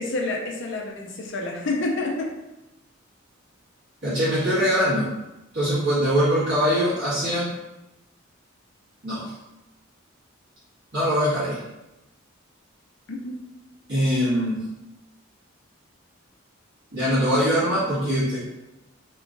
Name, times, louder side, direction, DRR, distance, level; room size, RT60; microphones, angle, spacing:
voice 1, 0.0-2.3 13.1-13.3, left 2 dB, 60° left, 0 dB, 0.6 m, -28 dB
voice 2, 4.0-5.1 5.5-7.5 9.0-9.3 10.9-11.6 13.9-14.6 16.9-18.4, equal, 55° right, -12 dB, 1.3 m, -22 dB
3.0 x 2.4 x 3.8 m, 0.96 s
head